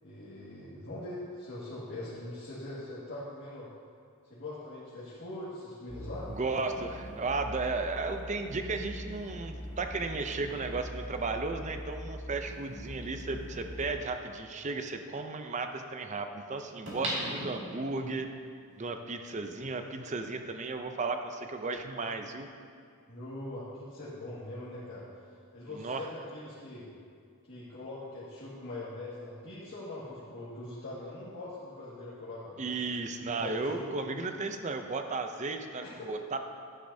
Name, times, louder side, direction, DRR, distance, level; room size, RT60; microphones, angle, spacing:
voice 1, 0.0-3.7 4.2-6.5 23.1-26.9 27.5-32.6 33.4-34.1 35.8-36.1, left 1 dB, 55° left, -11 dB, 2.0 m, -42 dB
sound 1, 5.9-14.0, equal, 10° left, 0.9 m, -43 dB
voice 2, 6.3-18.3 18.8-22.5 25.7-26.1 32.6-36.4, right 3 dB, 35° right, 6 dB, 0.6 m, -34 dB
sound 2, 16.9-18.2 18.7-18.8, equal, 55° right, 2.4 m, -36 dB
11.5 x 9.5 x 2.8 m, 2.2 s
head